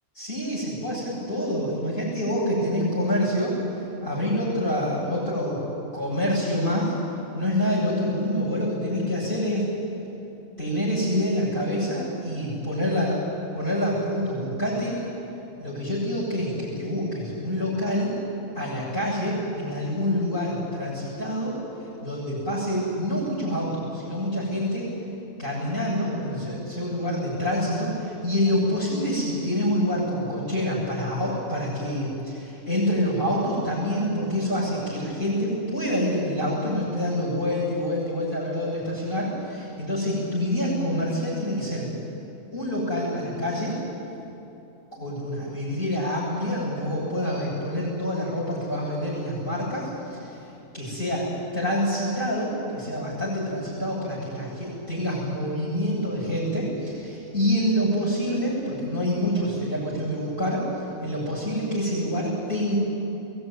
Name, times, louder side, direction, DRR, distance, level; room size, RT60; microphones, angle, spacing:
voice 1, 0.1-5.6 5.9-6.9 7.3-9.7 10.6-13.2 13.5-15.0 15.6-18.1 18.5-21.6 22.0-24.9 25.4-41.9 42.5-43.8 44.9-50.4 50.7-51.3 51.5-62.7, equal, 40° left, -7 dB, 7.7 m, -27 dB
21.0 x 17.5 x 9.7 m, 2.9 s
omnidirectional pair, 1.6 m